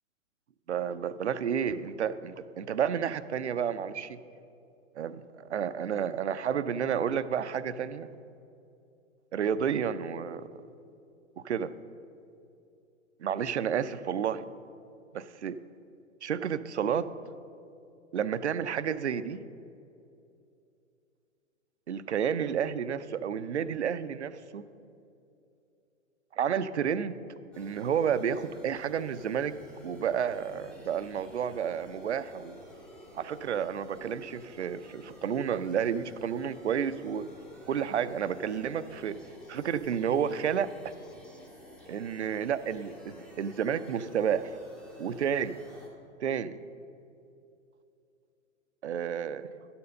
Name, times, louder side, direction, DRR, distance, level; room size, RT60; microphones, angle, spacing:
voice 1, 0.7-4.2 5.0-8.1 9.3-10.5 11.4-11.7 13.2-14.4 15.1-15.6 16.2-17.1 18.1-19.4 21.9-24.7 26.3-27.2 27.6-29.6 29.8-32.6 33.1-37.3 37.7-39.2 39.5-40.9 41.9-44.6 45.0-45.6 46.2-46.6 48.8-49.5, right 8 dB, 60° right, 14 dB, 0.5 m, -31 dB
sound 1, 27.5-45.9, left 1 dB, ahead, 0.8 m, -52 dB
12.0 x 7.0 x 5.2 m, 2.6 s
figure-of-eight pair, 115°, 40 cm